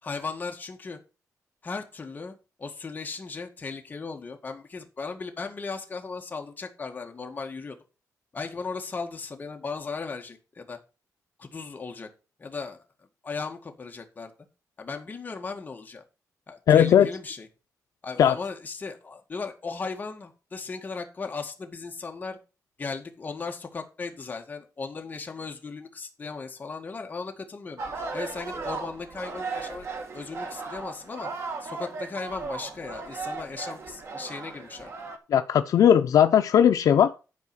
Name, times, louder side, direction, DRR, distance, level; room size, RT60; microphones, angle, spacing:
voice 1, 0.0-1.0 1.6-7.8 8.3-10.8 11.4-12.1 12.4-14.3 14.8-16.0 16.5-17.5 18.0-22.4 22.8-31.3 31.6-34.9, left 4 dB, 30° left, 3 dB, 1.9 m, -37 dB
voice 2, 16.7-17.1 18.2-18.4 35.3-37.2, left 9 dB, 70° left, 9 dB, 0.6 m, -18 dB
sound 1, 27.8-35.2, right 4 dB, 45° right, 1.9 m, -36 dB
11.5 x 4.8 x 6.2 m, 0.32 s
wide cardioid pair, 150°, 6 cm